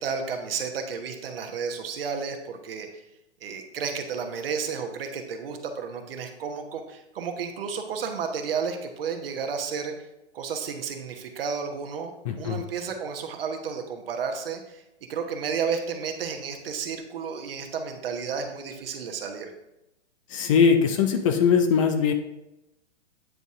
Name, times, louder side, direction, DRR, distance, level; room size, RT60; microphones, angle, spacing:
voice 1, 0.0-3.0 3.4-9.9 10.3-12.1 12.4-14.8 15.1-19.5, right 6 dB, 55° right, 5 dB, 1.2 m, -32 dB
voice 2, 12.2-12.6 20.3-22.1, left 6 dB, 30° left, 6 dB, 0.5 m, -21 dB
9.2 x 4.0 x 3.7 m, 0.91 s
figure-of-eight pair, 120°, 35 cm